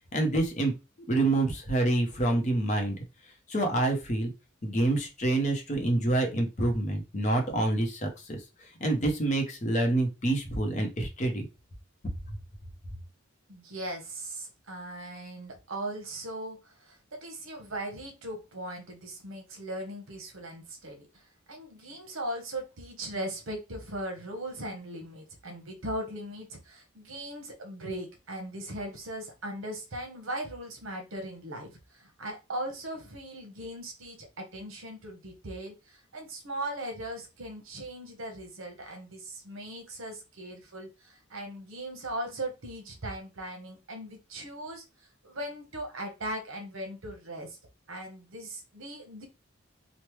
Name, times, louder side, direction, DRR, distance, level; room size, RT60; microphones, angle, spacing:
voice 1, 0.1-0.7 1.1-3.0 3.5-4.3 4.6-8.4 8.8-11.5, right 2 dB, 35° left, 3 dB, 0.7 m, -27 dB
voice 2, 13.5-44.8 45.2-47.6 47.9-49.2, right 1 dB, 70° right, 3 dB, 0.9 m, -39 dB
3.1 x 2.1 x 3.0 m, 0.27 s
head